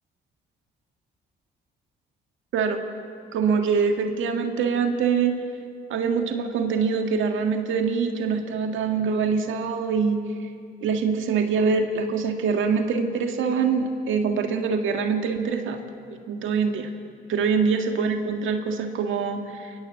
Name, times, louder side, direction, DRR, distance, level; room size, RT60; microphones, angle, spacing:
voice 1, 3.3-5.4 5.9-10.2 10.8-15.8 16.1-16.9 17.3-19.8, right 5 dB, 80° right, 5 dB, 1.8 m, -24 dB
23.0 x 19.5 x 7.7 m, 2.4 s
cardioid pair, 90°, 20 cm